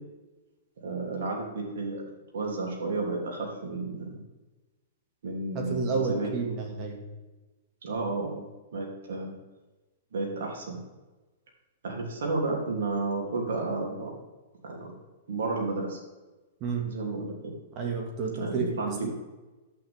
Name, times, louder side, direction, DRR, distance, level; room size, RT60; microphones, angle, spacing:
voice 1, 0.8-2.0 2.3-4.2 5.2-6.5 7.8-9.4 10.1-10.8 11.8-14.1 14.6-14.9 15.3-16.0 16.8-17.5 18.4-19.1, right 3 dB, 75° right, 0 dB, 3.2 m, -32 dB
voice 2, 5.5-7.0 16.6-16.8 17.8-18.6 19.0-19.1, right 4 dB, 35° right, 1 dB, 2.1 m, -30 dB
11.0 x 8.8 x 3.7 m, 1.2 s
hypercardioid pair, 130°, 0 cm